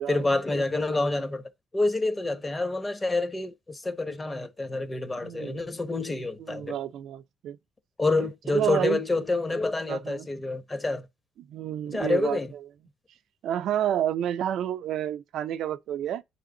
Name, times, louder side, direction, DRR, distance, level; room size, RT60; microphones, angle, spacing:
voice 1, 0.1-1.4 1.7-6.8 8.0-11.1 11.9-12.5, left 2 dB, 20° left, 0.9 m, -28 dB
voice 2, 5.2-5.6 6.4-7.6 8.2-9.0 9.9-10.3 11.4-12.7 13.4-16.2, right 10 dB, 75° right, 0.5 m, -30 dB
9.1 x 3.3 x 3.8 m
cardioid pair, 90°, 0 cm